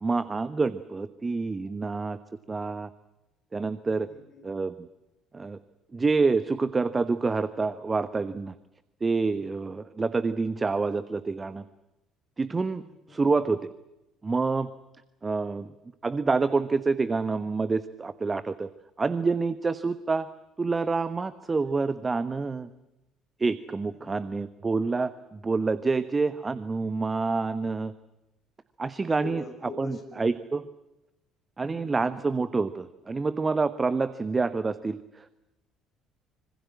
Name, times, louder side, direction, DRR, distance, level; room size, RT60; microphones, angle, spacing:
voice 1, 0.0-2.2 2.5-2.9 3.5-4.1 4.4-4.9 5.3-5.6 5.9-8.5 9.0-11.6 12.4-12.8 13.1-13.6 14.2-14.7 15.2-15.7 16.0-18.7 19.0-20.3 20.6-22.7 23.4-27.9 28.8-29.4 29.8-30.6 31.6-35.4, right 4 dB, 25° right, 14 dB, 1.1 m, -27 dB
voice 2, 3.9-4.4 12.7-12.8 13.1-13.2 23.9-24.2 29.1-30.3 31.6-32.1, left 2 dB, 35° left, 5 dB, 6.8 m, -43 dB
26.0 x 25.5 x 7.5 m, 0.95 s
figure-of-eight pair, 50°, 0 cm